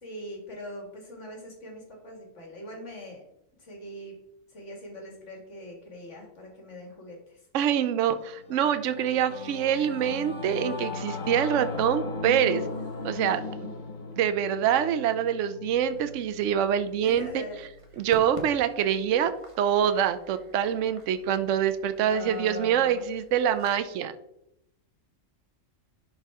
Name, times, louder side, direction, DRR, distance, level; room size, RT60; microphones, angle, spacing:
voice 1, 0.0-3.2 3.6-4.2 4.5-7.4 17.0-17.6 22.0-23.0, left 1 dB, 65° left, 0 dB, 2.5 m, -41 dB
voice 2, 7.5-12.7 13.0-13.7 14.2-17.4 18.0-19.3 19.6-24.1, right 9 dB, 75° right, 11 dB, 0.9 m, -25 dB
Singing / Musical instrument, 8.3-18.0, left 3 dB, 40° left, 0.9 m, -38 dB
sound 1, 15.6-23.8, right 2 dB, 25° right, 1.3 m, -50 dB
11.0 x 4.7 x 3.5 m, 0.80 s
omnidirectional pair, 1.3 m